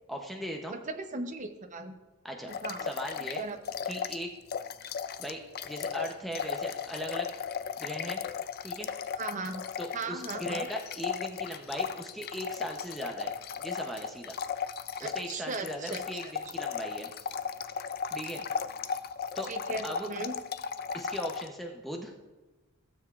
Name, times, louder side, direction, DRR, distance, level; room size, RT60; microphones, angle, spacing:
voice 1, 0.1-0.8 2.2-2.5 2.8-3.4 3.9-4.3 5.2-7.3 7.8-8.2 8.6-8.9 9.8-14.4 15.0-17.1 18.1-18.4 19.3-19.5 19.8-20.1 20.9-22.1, equal, ahead, 1 dB, 0.6 m, -38 dB
voice 2, 0.7-1.9 2.5-2.9 3.2-3.6 9.2-9.6 9.9-10.7 15.0-16.3 19.5-20.4, right 3 dB, 35° right, 6 dB, 0.7 m, -38 dB
sound 1, 2.5-4.2 4.5-21.5, left 7 dB, 45° left, 0.3 m, -36 dB
15.5 x 7.0 x 2.4 m, 1.2 s
head